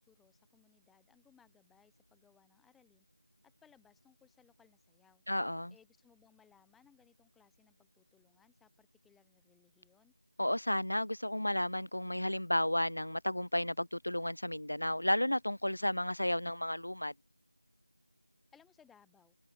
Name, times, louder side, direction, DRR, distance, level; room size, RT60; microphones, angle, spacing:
voice 1, 0.1-3.1 3.4-5.2 5.7-10.1 18.5-19.4, left 7 dB, ahead, 0.6 m, -67 dB
voice 2, 5.3-5.7 10.4-17.1, left 1 dB, 70° left, 0.3 m, -33 dB
figure-of-eight pair, 170°, 0 cm